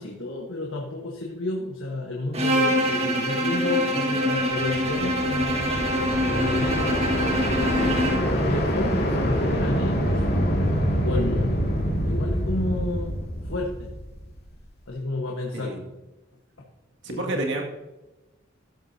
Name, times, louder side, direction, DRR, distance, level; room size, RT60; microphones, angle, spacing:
voice 1, 0.0-7.0 7.4-10.2 10.6-10.7 11.0-11.6 12.0-13.2 13.4-13.9 14.9-15.7 17.0-17.5, left 2 dB, 70° left, -1 dB, 1.5 m, -31 dB
Bowed string instrument, 2.3-8.4, equal, 30° right, 1.7 m, -25 dB
sound 1, 4.6-14.6, equal, 50° left, 2.4 m, -26 dB
voice 2, 15.5-15.9 17.0-17.6, right 2 dB, 60° right, 1 dB, 2.3 m, -29 dB
14.5 x 12.0 x 2.9 m, 1.0 s
head